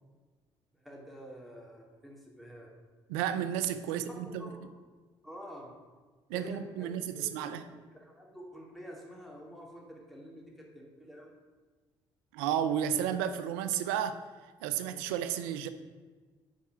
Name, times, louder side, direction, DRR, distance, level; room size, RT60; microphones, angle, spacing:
voice 1, 0.7-2.7 3.9-4.6 5.2-5.7 6.3-7.6 7.9-11.4, equal, ahead, -3 dB, 2.7 m, -48 dB
voice 2, 3.1-4.5 6.3-7.6 12.3-14.2 14.6-15.7, right 9 dB, 90° right, 11 dB, 0.5 m, -32 dB
6.4 x 4.7 x 6.8 m, 1.4 s
supercardioid pair, 60°, 12 cm